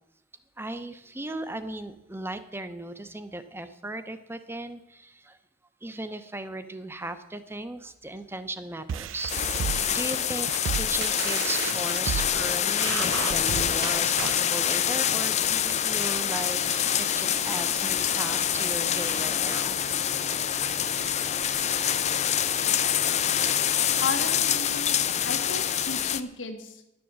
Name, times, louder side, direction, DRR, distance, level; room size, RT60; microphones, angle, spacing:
voice 1, 0.6-5.4 5.8-19.8, right 2 dB, 10° right, 11 dB, 0.7 m, -37 dB
sound 1, 8.9-14.5, right 8 dB, 80° right, 0.3 m, -33 dB
sound 2, 9.3-26.2, left 9 dB, 35° left, 0.5 m, -26 dB
sound 3, 16.4-26.1, right 2 dB, 50° right, 1.0 m, -43 dB
voice 2, 24.0-25.0 25.2-26.8, left 4 dB, 75° left, 6 dB, 1.5 m, -34 dB
11.0 x 7.1 x 7.4 m, 0.87 s
head